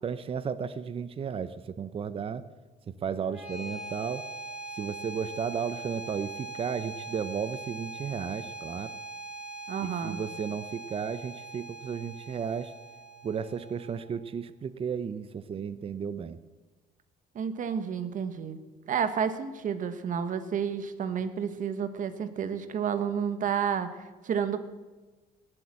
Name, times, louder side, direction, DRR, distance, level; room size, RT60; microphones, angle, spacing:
voice 1, 0.0-2.4 3.0-4.2 4.7-8.9 10.0-12.7 13.2-16.4, right 7 dB, 35° right, 13 dB, 0.7 m, -34 dB
sound 1, 3.2-14.2, right 3 dB, 5° right, 3.4 m, -42 dB
voice 2, 9.7-10.2 17.3-18.6 18.8-24.7, right 7 dB, 50° right, 11 dB, 1.3 m, -30 dB
19.0 x 8.1 x 7.6 m, 1.3 s
cardioid pair, 110°, 17 cm